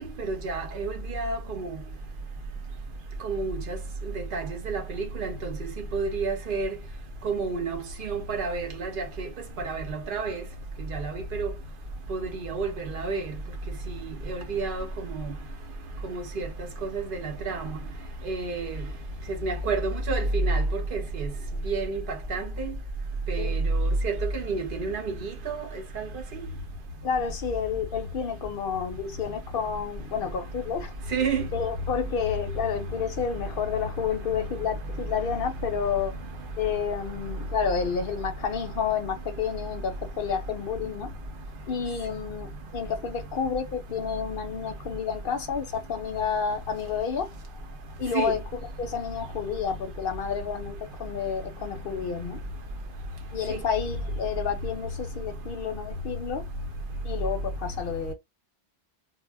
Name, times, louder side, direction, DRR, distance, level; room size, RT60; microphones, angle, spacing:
voice 1, 0.0-1.7 3.2-3.8 4.3-6.7 7.2-9.3 9.6-10.4 10.9-11.5 12.1-13.2 14.3-14.9 15.1-15.3 16.1-16.5 16.8-17.8 18.3-18.7 19.4-20.6 20.9-21.3 21.6-22.0 22.3-22.7 23.3-25.6 26.0-26.1 31.1-31.5 48.1-48.3 53.5-53.6, right 3 dB, 60° right, 0.8 m, -29 dB
voice 2, 27.0-30.9 31.5-36.1 36.6-41.1 41.7-47.3 48.0-48.4 48.8-52.4 53.3-56.5 57.0-58.1, left 6 dB, 60° left, 0.7 m, -30 dB
2.1 x 2.1 x 3.3 m
omnidirectional pair, 1.1 m